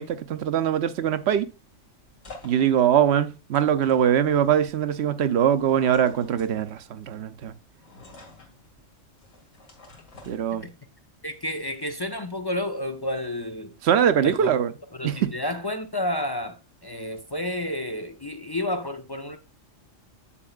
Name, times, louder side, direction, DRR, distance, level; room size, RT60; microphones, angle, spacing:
voice 1, 0.0-1.5 2.4-7.5 10.3-10.7 13.8-14.7 15.0-15.3, right 9 dB, 65° right, 0.8 m, -22 dB
sound 1, 1.5-11.0, left 2 dB, 75° left, 2.5 m, -50 dB
voice 2, 11.2-13.7 14.2-14.5 15.0-19.4, left 1 dB, 40° left, 0.3 m, -31 dB
8.1 x 7.1 x 2.4 m
omnidirectional pair, 1.3 m